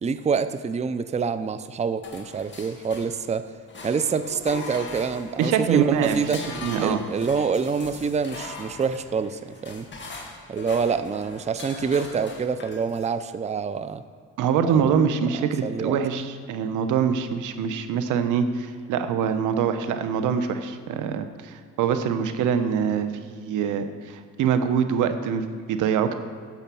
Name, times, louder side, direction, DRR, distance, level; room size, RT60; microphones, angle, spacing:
voice 1, 0.0-3.5 3.8-6.4 6.8-9.9 10.5-14.0 14.7-15.1 15.6-16.0, right 5 dB, 25° right, 12 dB, 0.5 m, -26 dB
sound 1, 2.0-3.4 3.7-13.1, left 3 dB, 40° left, 2.2 m, -40 dB
voice 2, 5.4-6.2 6.5-7.0 14.4-26.2, right 7 dB, 85° right, 9 dB, 0.9 m, -24 dB
10.5 x 7.1 x 6.9 m, 2.2 s
cardioid pair, 90°, 30 cm